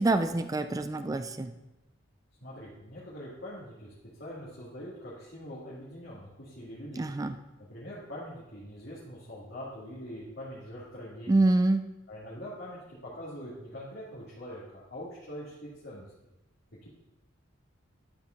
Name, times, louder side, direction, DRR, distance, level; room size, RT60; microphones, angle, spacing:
voice 1, 0.0-1.5 7.0-7.3 11.3-11.8, right 2 dB, 20° right, 9 dB, 0.3 m, -26 dB
voice 2, 2.4-7.1 7.7-11.4 12.1-16.1 16.8-16.9, equal, 60° left, -8 dB, 2.0 m, -43 dB
11.5 x 4.6 x 3.8 m, 0.97 s
head